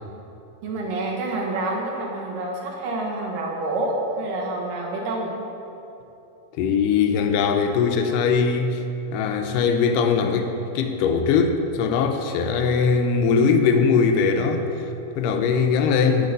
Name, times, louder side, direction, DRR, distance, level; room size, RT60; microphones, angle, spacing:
voice 1, 0.6-5.3, right 2 dB, 85° right, -2 dB, 2.7 m, -27 dB
voice 2, 6.5-8.8 9.1-16.3, left 5 dB, 85° left, 6 dB, 2.2 m, -21 dB
7.9 x 6.4 x 5.3 m, 2.9 s
omnidirectional pair, 3.8 m